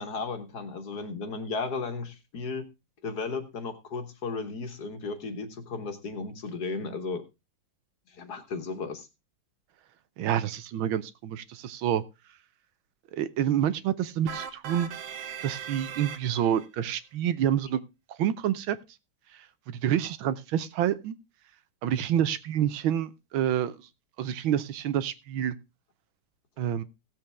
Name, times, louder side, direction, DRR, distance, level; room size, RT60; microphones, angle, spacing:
voice 1, 0.0-2.6 3.0-7.2 8.1-9.1, left 4 dB, 55° left, 8 dB, 1.8 m, -35 dB
voice 2, 10.2-12.0 13.1-14.9 15.4-17.8 18.1-18.8 19.7-21.1 21.8-23.9 24.2-25.6 26.6-26.8, right 10 dB, 85° right, 14 dB, 1.6 m, -28 dB
sound 1, 14.3-16.7, right 8 dB, 65° right, 1.7 m, -39 dB
16.5 x 7.6 x 3.4 m, 0.25 s
omnidirectional pair, 2.2 m